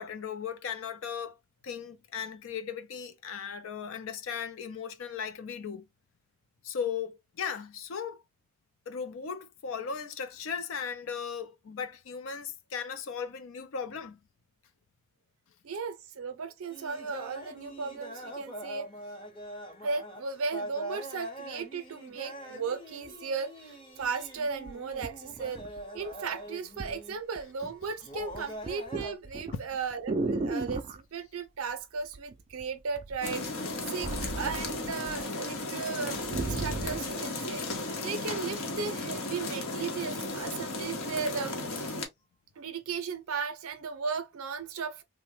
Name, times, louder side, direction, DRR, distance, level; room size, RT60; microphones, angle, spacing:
voice 1, 0.0-1.4 1.6-5.9 6.6-8.2 8.9-14.2 29.5-29.6, left 6 dB, 70° left, 0.4 m, -37 dB
voice 2, 15.6-18.9 19.8-25.6 25.9-34.1 34.4-42.0 42.6-45.0, right 5 dB, 85° right, 0.5 m, -36 dB
sound 1, 16.7-27.2 28.0-29.2, right 1 dB, 25° left, 0.7 m, -43 dB
sound 2, 24.0-24.1 24.7-26.1 26.8-27.0 27.4-27.8 28.1-31.0 32.1-32.6 32.9-35.2 35.6-35.7 36.0-37.1 37.8-37.9, right 3 dB, 25° right, 0.3 m, -35 dB
sound 3, 33.2-42.0, left 2 dB, 85° left, 1.0 m, -35 dB
3.3 x 2.1 x 3.1 m
head